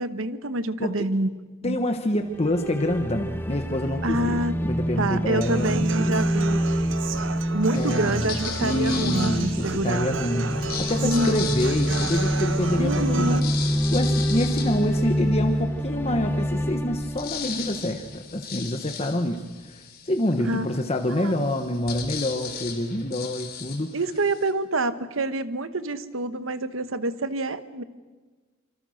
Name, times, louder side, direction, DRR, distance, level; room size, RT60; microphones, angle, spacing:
voice 1, 0.0-1.3 1.6-1.8 4.0-4.6 5.0-6.6 7.5-10.2 11.0-11.5 12.8-13.5 20.4-20.7 21.2-21.5 23.9-27.8, right 2 dB, 80° right, 12 dB, 1.2 m, -27 dB
voice 2, 1.6-6.2 7.7-13.4 13.9-23.9, left 1 dB, 30° left, 5 dB, 1.1 m, -27 dB
sound 1, 2.3-18.4, equal, 10° left, 1.2 m, -27 dB
Human voice / Acoustic guitar, 5.4-13.4, right 5 dB, 65° right, 0.8 m, -33 dB
sound 2, 7.7-9.9 10.5-15.7 16.2-16.3 16.5-24.5, left 7 dB, 50° left, 3.2 m, -37 dB
26.0 x 26.0 x 6.5 m, 1.3 s
head